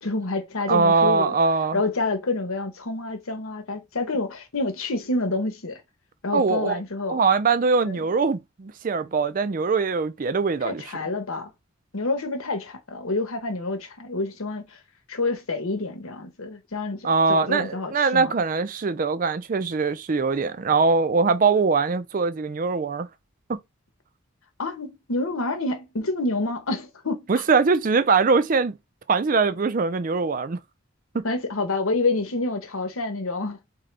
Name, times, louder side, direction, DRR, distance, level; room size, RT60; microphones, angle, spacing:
voice 1, 0.0-1.3 1.7-5.8 6.2-7.2 7.8-8.0 10.6-11.5 11.9-14.8 15.1-18.3 24.6-27.3 31.2-33.6, left 2 dB, 90° left, 1.1 m, -28 dB
voice 2, 0.7-1.8 6.3-6.8 7.1-10.8 17.0-23.1 23.5-23.6 27.3-28.8 29.1-30.6 31.1-31.2, right 4 dB, 40° right, 0.4 m, -22 dB
3.8 x 3.7 x 3.3 m
head